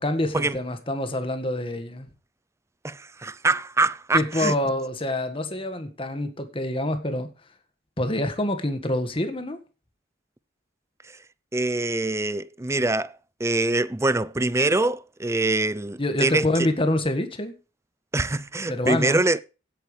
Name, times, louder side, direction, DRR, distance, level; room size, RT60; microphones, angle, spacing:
voice 1, 0.0-2.1 4.1-7.3 8.0-9.6 16.0-17.5 18.7-19.2, left 1 dB, 25° left, 1.7 m, -26 dB
voice 2, 2.8-4.5 11.5-13.1 13.4-16.5 18.1-19.4, right 2 dB, 15° right, 0.5 m, -24 dB
16.0 x 9.0 x 3.3 m
head